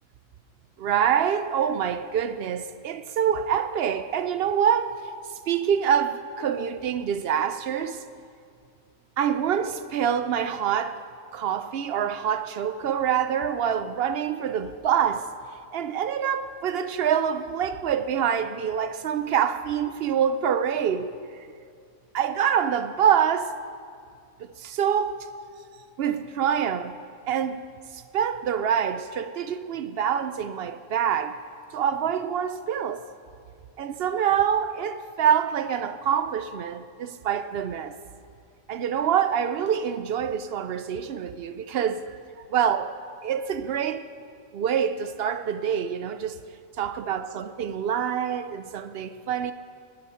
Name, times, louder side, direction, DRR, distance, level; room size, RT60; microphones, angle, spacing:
voice 1, 0.8-5.0 5.5-8.0 9.2-11.0 11.3-15.3 15.7-21.2 22.1-23.5 24.4-25.3 26.0-26.9 27.3-27.6 27.9-31.4 31.7-33.1 33.8-38.0 38.7-42.2 42.5-42.9 43.2-44.0 44.5-46.4 46.8-49.5, right 8 dB, 65° right, 0.6 m, -26 dB
18.5 x 7.9 x 5.6 m
omnidirectional pair, 1.4 m